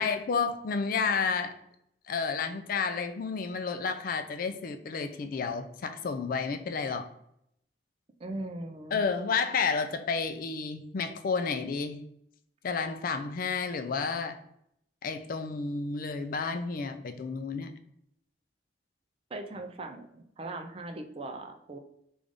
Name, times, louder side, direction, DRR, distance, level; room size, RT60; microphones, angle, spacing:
voice 1, 0.0-1.5 2.1-7.1 8.9-12.1 12.6-14.4 15.0-17.7, left 5 dB, 55° left, 8 dB, 0.4 m, -31 dB
voice 2, 8.2-9.0 19.3-21.8, right 2 dB, 35° right, 5 dB, 0.4 m, -39 dB
3.4 x 2.5 x 3.6 m, 0.74 s
head